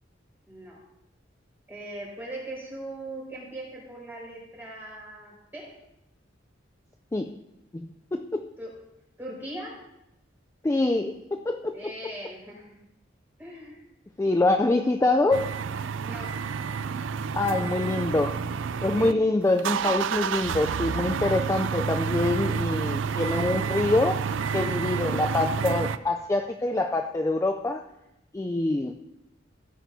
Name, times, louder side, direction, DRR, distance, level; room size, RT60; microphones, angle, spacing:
voice 1, 0.5-0.8 1.7-5.7 8.6-8.7 9.2-9.8 11.7-12.7 13.4-13.8 16.0-16.4 17.5-18.0 18.9-19.2, right 1 dB, 10° right, -5 dB, 4.9 m, -39 dB
voice 2, 7.7-8.5 10.6-11.8 14.2-15.5 17.3-18.3 18.8-24.2 24.5-27.8 28.3-29.0, left 2 dB, 15° left, 5 dB, 0.3 m, -25 dB
Starting Truck Engine, 15.3-19.1 19.4-26.0, right 6 dB, 80° right, 0.4 m, -29 dB
16.5 x 9.2 x 2.7 m, 0.87 s
head